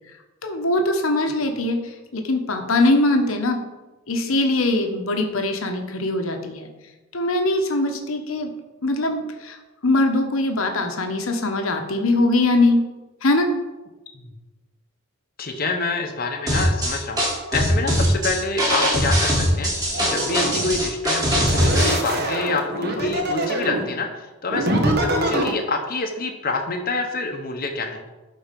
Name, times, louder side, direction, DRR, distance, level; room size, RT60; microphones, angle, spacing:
voice 1, 0.4-3.6 4.1-6.7 7.1-8.5 8.8-9.6 9.8-12.8 13.2-13.5, left 2 dB, 80° left, 4 dB, 1.1 m, -21 dB
voice 2, 15.4-28.1, left 3 dB, 45° left, 3 dB, 0.9 m, -27 dB
sound 1, 16.5-21.9, equal, 20° right, 2.4 m, -21 dB
sound 2, 19.9-20.8 21.4-23.9 24.5-25.5, right 1 dB, 50° right, 1.4 m, -24 dB
11.5 x 4.3 x 5.2 m, 1.1 s
head